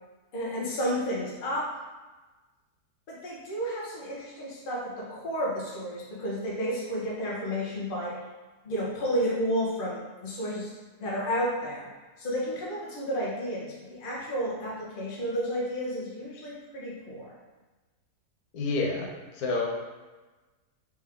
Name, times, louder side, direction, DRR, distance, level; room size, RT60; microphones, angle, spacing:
voice 1, 0.3-1.7 3.1-8.2 8.6-10.7 11.0-11.9 12.2-17.3, equal, 40° left, -5 dB, 1.0 m, -31 dB
voice 2, 18.5-19.7, left 3 dB, 65° left, -1 dB, 1.2 m, -29 dB
3.5 x 3.4 x 3.5 m, 1.2 s
omnidirectional pair, 1.8 m